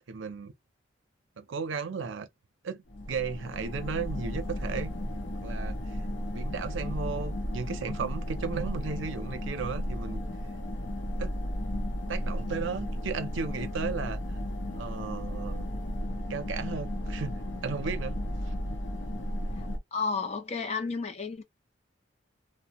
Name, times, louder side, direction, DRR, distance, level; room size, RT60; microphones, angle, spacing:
voice 1, 0.1-0.5 1.4-2.3 2.6-4.9 5.3-6.0 6.3-10.2 11.2-11.3 12.1-14.2 14.7-15.7 16.3-18.2 18.5-18.8, right 5 dB, 80° right, 0.5 m, -35 dB
sound 1, 2.9-19.8, left 1 dB, 70° left, 0.7 m, -34 dB
voice 2, 19.9-21.4, left 4 dB, 35° left, 0.4 m, -31 dB
2.6 x 2.0 x 2.9 m
head